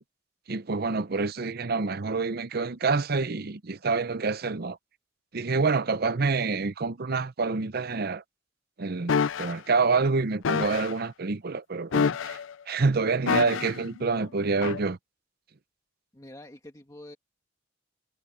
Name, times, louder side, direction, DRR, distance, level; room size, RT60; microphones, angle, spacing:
voice 1, 0.5-4.8 5.3-8.2 8.8-12.4 12.7-15.0, right 4 dB, 55° right, 0.7 m, -27 dB
sound 1, 9.1-9.5 10.4-10.9 11.9-12.5 13.3-13.8 14.6-14.8, left 6 dB, 80° left, 0.5 m, -27 dB
voice 2, 16.1-17.2, left 1 dB, 20° left, 1.8 m, -46 dB
head